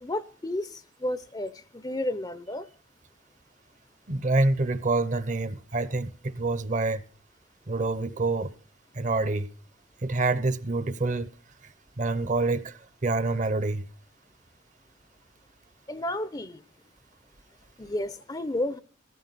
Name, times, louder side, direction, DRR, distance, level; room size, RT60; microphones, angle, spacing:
voice 1, 0.0-2.7 15.9-16.6 17.8-18.8, left 1 dB, 20° left, 0.6 m, -32 dB
voice 2, 4.1-7.0 7.7-8.5 8.9-9.5 10.0-11.3 12.0-13.8, right 2 dB, 40° right, 0.8 m, -27 dB
15.5 x 14.5 x 4.0 m
head